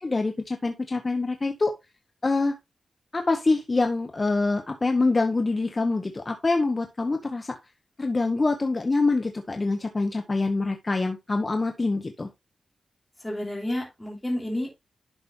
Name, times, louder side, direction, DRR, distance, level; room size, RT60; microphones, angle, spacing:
voice 1, 0.0-1.7 2.2-2.6 3.1-7.5 8.0-12.3, left 3 dB, 30° left, 5 dB, 1.1 m, -25 dB
voice 2, 13.2-14.8, left 1 dB, 10° left, -2 dB, 3.2 m, -30 dB
11.0 x 6.0 x 2.7 m, 0.21 s
wide cardioid pair, 110°, 0 cm